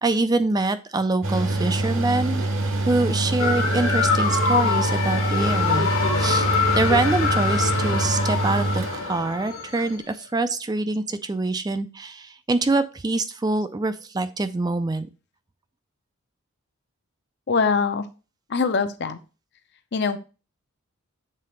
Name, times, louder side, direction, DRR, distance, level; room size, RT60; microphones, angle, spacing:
voice 1, 0.0-2.5 2.9-6.5 6.7-15.1, right 2 dB, 15° right, 11 dB, 0.3 m, -25 dB
Mechanical fan, 1.2-9.7, right 2 dB, 60° right, 1.0 m, -25 dB
sound 1, 3.4-10.0, left 5 dB, 65° left, 1.4 m, -24 dB
voice 2, 17.5-18.0 18.5-19.2 19.9-20.2, left 5 dB, 50° left, 10 dB, 0.6 m, -22 dB
7.6 x 3.9 x 3.2 m, 0.33 s
head